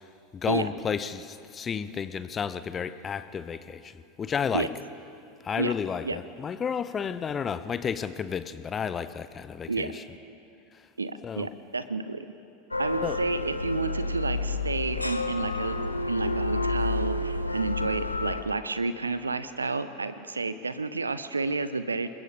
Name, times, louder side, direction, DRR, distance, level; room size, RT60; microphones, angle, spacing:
voice 1, 0.3-4.7 5.4-10.0 11.2-11.5 13.0-13.2, left 7 dB, 25° left, 14 dB, 0.8 m, -32 dB
voice 2, 11.0-12.3 12.8-15.8 16.1-22.1, right 3 dB, 80° right, 13 dB, 0.9 m, -30 dB
sound 1, 12.7-18.4, left 2 dB, 85° left, 0.9 m, -29 dB
28.0 x 21.5 x 5.1 m, 2.8 s
figure-of-eight pair, 85°, 0 cm